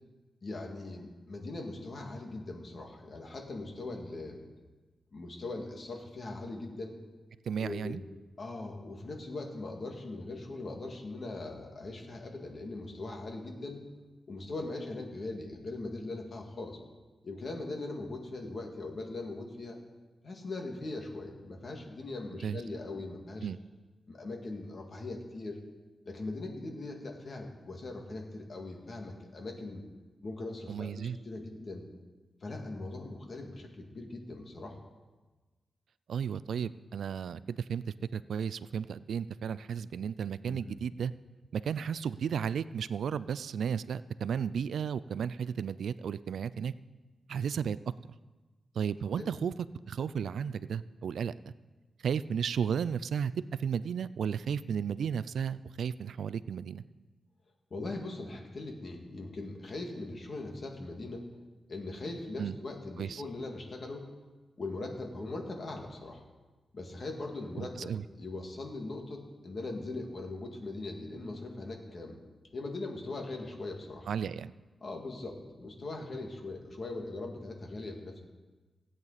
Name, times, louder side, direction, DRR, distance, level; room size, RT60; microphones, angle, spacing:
voice 1, 0.4-4.4 5.1-7.0 7.6-8.0 8.4-13.8 14.3-16.8 17.2-19.8 20.2-23.5 24.1-25.6 26.1-29.8 30.2-31.9 32.4-34.8 40.4-40.8 49.2-49.3 57.7-61.3 61.7-64.1 64.6-66.2 66.7-67.9 68.2-72.2 72.5-74.1 74.8-78.2, left 2 dB, 45° left, 2 dB, 1.9 m, -40 dB
voice 2, 7.5-8.0 22.4-22.6 23.4-23.6 30.7-31.2 36.1-37.8 38.1-41.1 41.5-46.7 47.3-47.8 48.0-48.1 48.8-49.5 49.9-51.3 52.0-56.8 62.4-62.5 63.0-63.2 67.6-68.0 74.1-74.5, right 7 dB, 85° right, 17 dB, 0.3 m, -34 dB
16.5 x 8.9 x 4.1 m, 1.3 s
wide cardioid pair, 140°, 0 cm